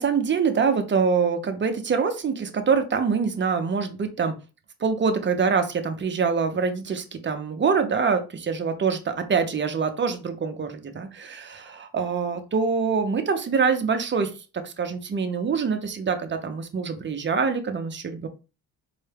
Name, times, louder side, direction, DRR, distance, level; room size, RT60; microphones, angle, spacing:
voice 1, 0.0-4.3 4.8-18.3, right 5 dB, 30° right, 8 dB, 0.5 m, -25 dB
4.6 x 2.1 x 3.3 m, 0.31 s
cardioid pair, 130°, 39 cm